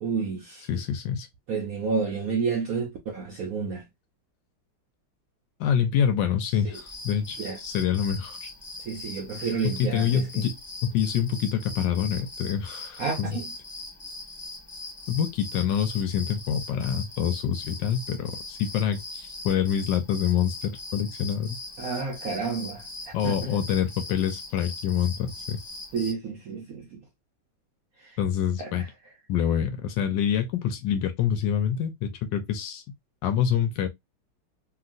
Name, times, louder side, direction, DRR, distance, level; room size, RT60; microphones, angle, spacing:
voice 1, 0.0-0.7 1.5-3.8 6.6-6.8 7.4-7.6 8.9-10.5 13.0-13.5 21.8-23.6 25.9-27.0 28.0-28.1 28.6-28.9, right 5 dB, 70° right, 0.8 m, -30 dB
voice 2, 0.7-1.3 5.6-8.5 9.6-13.3 15.1-21.6 23.1-25.6 28.2-28.8 29.3-32.8 33.2-33.9, left 8 dB, 75° left, 1.2 m, -26 dB
sound 1, 6.7-26.1, left 3 dB, 20° left, 0.7 m, -40 dB
2.9 x 2.9 x 2.5 m
omnidirectional pair, 2.2 m